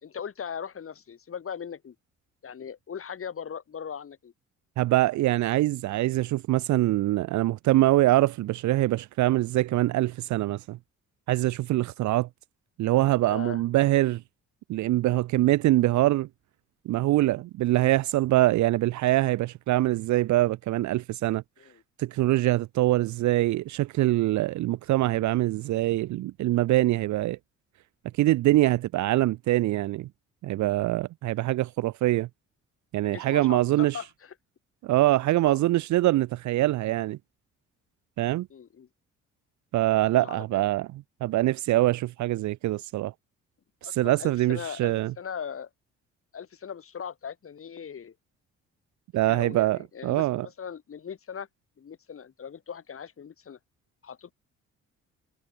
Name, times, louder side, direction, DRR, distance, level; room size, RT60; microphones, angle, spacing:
voice 1, 0.0-1.9 2.4-4.3 13.2-13.6 21.6-21.8 33.0-34.3 35.4-35.6 38.5-38.9 40.1-40.6 43.8-45.7 46.3-48.1 49.3-51.5 51.8-53.6 54.0-54.3, left 7 dB, 45° left, 3.1 m, -39 dB
voice 2, 4.8-10.8 11.3-12.3 12.8-14.2 14.7-16.3 16.9-21.4 22.0-27.4 28.1-30.1 30.4-32.3 32.9-34.0 34.8-37.2 38.2-38.5 39.7-43.1 43.8-45.1 49.1-50.5, right 16 dB, 70° right, 0.5 m, -24 dB
cardioid pair, 90°, 30 cm